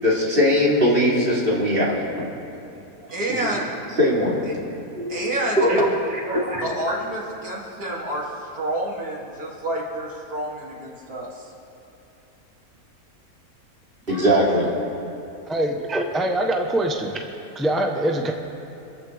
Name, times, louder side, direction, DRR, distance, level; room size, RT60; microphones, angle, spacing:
voice 1, 0.0-2.0 3.1-3.5 4.0-4.4 5.0-5.3 5.6-5.7 14.1-14.7, equal, 40° right, -6 dB, 3.8 m, -20 dB
voice 2, 3.1-3.6 5.1-8.2 8.5-11.5, right 1 dB, 85° right, -4 dB, 3.3 m, -27 dB
voice 3, 15.5-17.2 17.5-18.3, right 1 dB, ahead, 2 dB, 0.9 m, -23 dB
26.5 x 14.0 x 3.5 m, 3.0 s
omnidirectional pair, 1.5 m